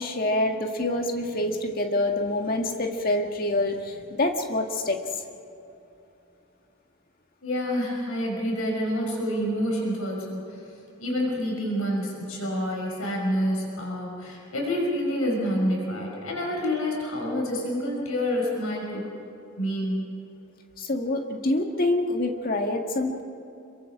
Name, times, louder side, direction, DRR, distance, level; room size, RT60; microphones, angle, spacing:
voice 1, 0.0-5.0 20.8-23.2, left 2 dB, 40° left, 3 dB, 1.8 m, -26 dB
voice 2, 7.4-10.6 11.0-19.1 19.6-20.1, equal, 75° left, -1 dB, 5.5 m, -28 dB
26.5 x 23.0 x 4.9 m, 2.8 s
head